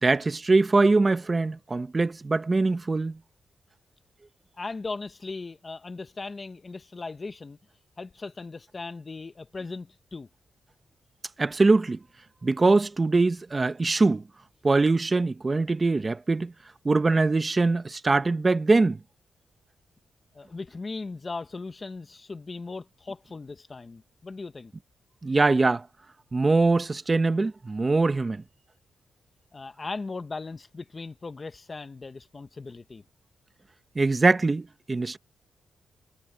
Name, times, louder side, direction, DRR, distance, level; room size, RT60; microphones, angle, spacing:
voice 1, 0.0-3.2 11.4-12.0 12.4-14.2 14.6-16.5 16.8-19.0 25.2-25.9 26.3-28.4 33.9-35.2, right 3 dB, 30° right, 1.1 m, -22 dB
voice 2, 4.6-7.6 8.0-10.3 20.3-24.7 29.5-33.0, left 3 dB, 35° left, 1.1 m, -38 dB
cardioid pair, 90°, 0 cm